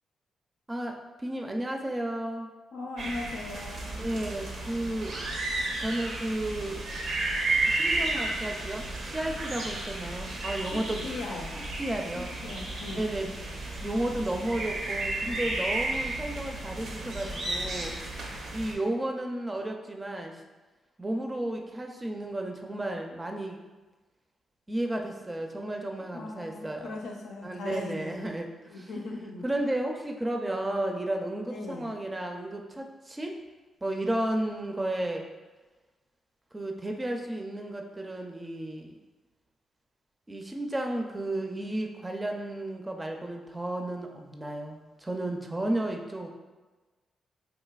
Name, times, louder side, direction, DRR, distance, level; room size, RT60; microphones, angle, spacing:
voice 1, 0.7-2.5 4.0-5.2 5.8-6.8 7.6-11.1 11.8-12.3 13.0-13.3 13.8-17.9 18.5-20.3 21.0-23.6 24.7-27.0 27.4-28.9 29.4-33.3 33.8-35.2 36.5-39.0 40.3-46.3, right 1 dB, 20° right, 2 dB, 0.5 m, -33 dB
voice 2, 2.7-4.0 10.7-11.5 12.1-13.0 26.1-28.4 28.7-29.4 31.4-31.9, left 2 dB, 85° left, 0 dB, 0.5 m, -39 dB
sound 1, 3.0-18.7, right 2 dB, 75° right, 0.6 m, -33 dB
4.0 x 2.8 x 2.3 m, 1.2 s
cardioid pair, 65°, 0 cm